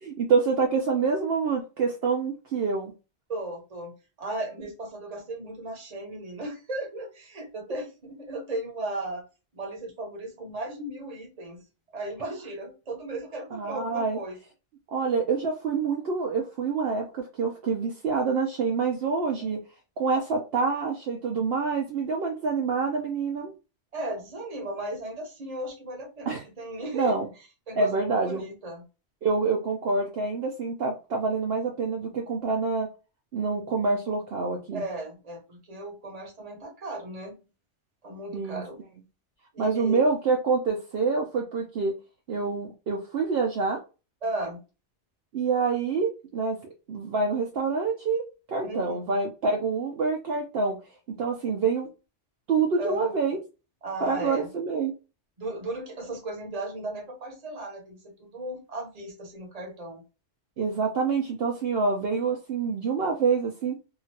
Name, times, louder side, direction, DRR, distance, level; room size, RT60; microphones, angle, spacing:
voice 1, 0.0-2.9 13.5-14.2 14.9-19.6 20.0-23.5 26.3-26.4 26.9-27.3 27.8-28.4 29.2-32.9 33.3-34.8 38.3-38.6 39.6-41.9 42.3-43.8 45.3-46.6 46.9-48.2 48.5-50.8 51.2-51.9 52.5-53.4 54.0-54.9 60.6-63.7, right 4 dB, 65° right, 0 dB, 0.8 m, -26 dB
voice 2, 3.3-9.2 9.5-11.7 11.9-14.4 19.3-19.6 23.9-27.2 27.7-28.8 34.7-37.4 38.0-38.8 39.5-40.1 44.2-44.6 48.6-49.0 52.8-53.1 53.8-54.5 55.4-60.0, right 1 dB, 35° right, 1 dB, 0.9 m, -36 dB
2.9 x 2.5 x 2.6 m, 0.30 s
omnidirectional pair, 1.2 m